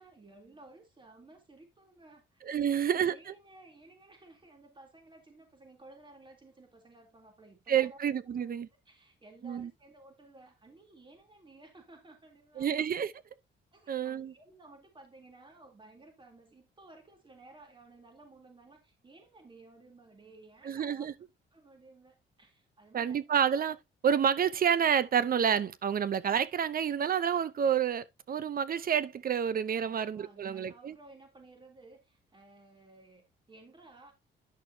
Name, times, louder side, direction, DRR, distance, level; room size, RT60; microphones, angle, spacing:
voice 1, 0.0-8.0 8.3-8.5 8.8-12.8 13.7-21.1 21.5-23.2 29.8-34.1, right 2 dB, 25° right, 3.3 m, -56 dB
voice 2, 2.4-3.3 7.7-8.7 9.4-9.7 12.6-13.1 13.9-14.3 20.6-21.1 22.9-23.8 24.0-31.0, right 8 dB, 45° right, 0.7 m, -29 dB
11.0 x 6.1 x 2.8 m
cardioid pair, 90°, 20 cm